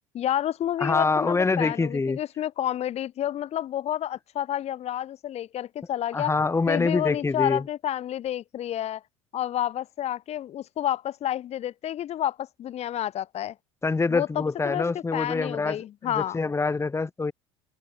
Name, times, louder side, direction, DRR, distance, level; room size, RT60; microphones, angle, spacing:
voice 1, 0.1-6.3 6.7-9.0 9.3-13.5 14.1-16.4, left 11 dB, 40° left, 3.6 m, -30 dB
voice 2, 0.8-2.2 6.1-7.7 13.8-17.3, left 4 dB, 15° left, 3.2 m, -25 dB
open air
figure-of-eight pair, 65°, 16 cm